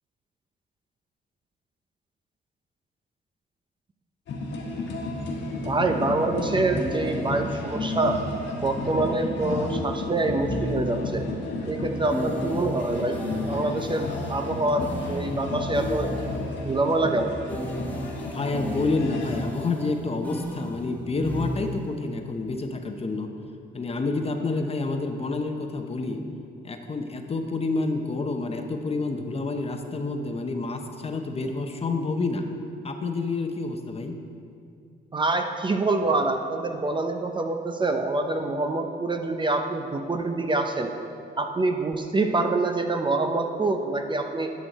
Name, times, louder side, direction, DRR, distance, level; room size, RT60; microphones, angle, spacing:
sound 1, 4.3-19.4, left 2 dB, 70° left, 1.5 m, -32 dB
voice 1, 5.6-8.2 8.6-11.3 11.7-16.1 16.6-17.4 35.1-40.9 41.4-44.5, right 2 dB, 25° right, 5 dB, 0.6 m, -26 dB
sound 2, 6.7-8.5 9.4-11.3 12.1-16.6 17.5-22.0, left 1 dB, 10° left, 1.2 m, -35 dB
voice 2, 18.2-23.3 23.7-26.2 26.6-32.4 32.8-34.1, left 3 dB, 30° left, 5 dB, 0.8 m, -28 dB
11.0 x 6.4 x 4.1 m, 2.5 s
cardioid pair, 90°, 20 cm